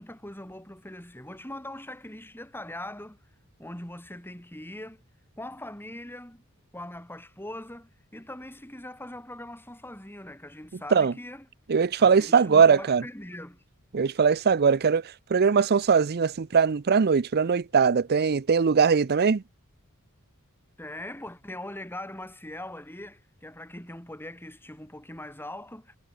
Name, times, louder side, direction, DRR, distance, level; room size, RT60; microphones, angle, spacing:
voice 1, 0.0-3.2 3.6-5.0 5.4-6.4 6.7-11.5 12.0-13.6 20.8-26.0, left 1 dB, 10° left, 5.9 m, -41 dB
voice 2, 11.7-13.0 13.9-15.0 15.3-19.4, right 6 dB, 45° right, 0.5 m, -21 dB
head